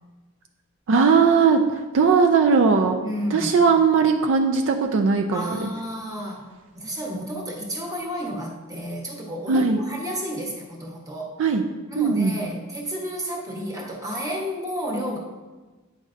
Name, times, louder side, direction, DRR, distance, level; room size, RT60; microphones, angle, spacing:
voice 1, 0.9-3.0 3.3-5.7 9.5-9.8 11.4-11.6 12.0-12.4, right 5 dB, 65° right, 4 dB, 0.4 m, -19 dB
voice 2, 3.0-3.6 5.3-6.5 6.7-11.4 11.9-15.2, equal, 15° right, -1 dB, 1.0 m, -31 dB
8.9 x 5.2 x 2.5 m, 1.3 s
head